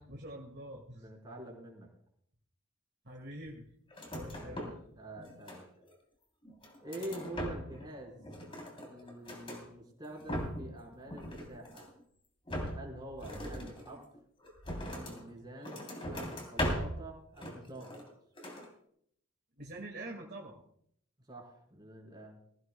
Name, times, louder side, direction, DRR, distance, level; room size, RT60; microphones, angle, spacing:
voice 1, 0.0-1.0 3.0-3.7 4.1-4.8 19.6-20.6, right 1 dB, 50° right, 0 dB, 2.1 m, -45 dB
voice 2, 0.9-1.9 4.3-4.6 4.9-5.6 6.8-8.2 8.8-11.9 12.7-14.0 14.9-15.8 16.1-18.0 21.3-22.4, right 1 dB, 20° right, -1 dB, 4.0 m, -46 dB
sound 1, 3.9-4.9 5.2-5.9 6.4-7.9 8.2-9.6 10.1-10.8 11.1-12.0 12.5-15.2 15.6-17.0 17.4-18.1 18.4-18.7, equal, 25° left, 3.3 m, -39 dB
21.0 x 15.5 x 2.3 m, 0.66 s
head